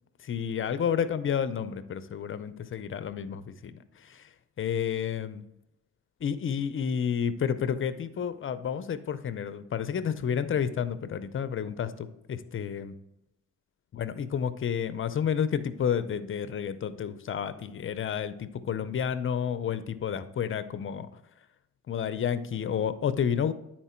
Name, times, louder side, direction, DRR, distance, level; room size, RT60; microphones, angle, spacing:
voice 1, 0.2-4.3 4.6-5.4 6.2-12.9 13.9-21.1 21.9-23.5, left 8 dB, 45° left, 13 dB, 0.6 m, -30 dB
10.0 x 4.4 x 4.4 m, 0.87 s
cardioid pair, 90°, 30 cm